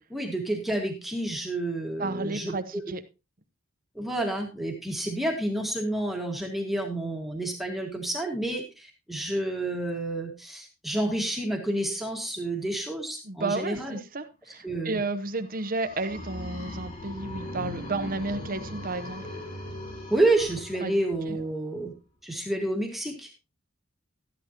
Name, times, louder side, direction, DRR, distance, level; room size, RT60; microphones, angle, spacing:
voice 1, 0.0-2.8 4.0-14.0 14.6-15.0 20.1-21.9 22.2-23.3, right 1 dB, ahead, 1.8 m, -29 dB
voice 2, 2.0-3.0 13.2-19.2 20.8-20.9 21.2-21.4, right 3 dB, 40° right, 0.9 m, -32 dB
sound 1, 15.5-21.4, left 1 dB, 30° left, 6.9 m, -39 dB
13.5 x 10.5 x 2.9 m
head